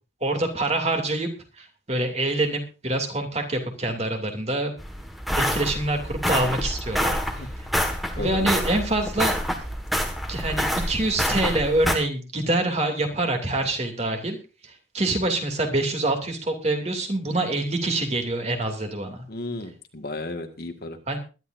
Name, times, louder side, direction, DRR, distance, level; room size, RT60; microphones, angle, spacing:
voice 1, 0.2-1.3 1.6-4.7 5.4-7.2 8.2-9.3 10.3-14.4 14.6-19.2 21.1-21.2, right 2 dB, 35° right, 4 dB, 2.6 m, -25 dB
sound 1, 4.8-12.0, equal, ahead, 1.6 m, -27 dB
voice 2, 8.2-8.5 19.3-21.0, left 2 dB, 50° left, 6 dB, 1.7 m, -33 dB
21.5 x 11.5 x 2.6 m, 0.32 s
head